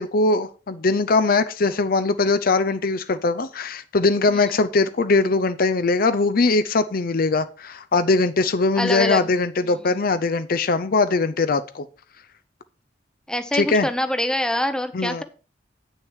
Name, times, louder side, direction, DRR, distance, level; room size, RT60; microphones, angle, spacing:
voice 1, 0.0-11.9 13.5-13.9 14.9-15.2, left 3 dB, 55° left, 12 dB, 0.6 m, -21 dB
voice 2, 8.8-9.3 13.3-15.2, left 1 dB, 5° left, 9 dB, 0.8 m, -25 dB
9.0 x 6.4 x 4.7 m, 0.35 s
head